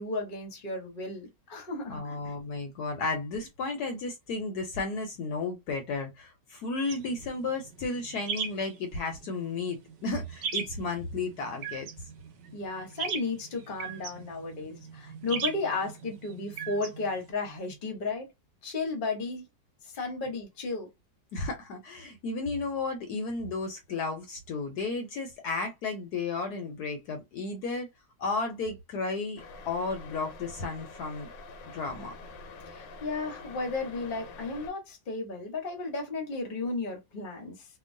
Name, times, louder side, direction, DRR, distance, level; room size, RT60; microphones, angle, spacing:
voice 1, 0.0-2.3 12.5-18.3 18.6-19.4 20.0-20.9 32.7-37.7, left 3 dB, 35° left, 0.9 m, -34 dB
voice 2, 1.9-11.9 21.3-27.9 28.2-31.3 31.7-32.1, left 3 dB, 70° left, 1.1 m, -33 dB
sound 1, 6.9-17.3, right 6 dB, 75° right, 1.3 m, -39 dB
sound 2, 29.4-34.7, left 3 dB, 85° left, 1.3 m, -46 dB
2.9 x 2.3 x 2.6 m
omnidirectional pair, 1.9 m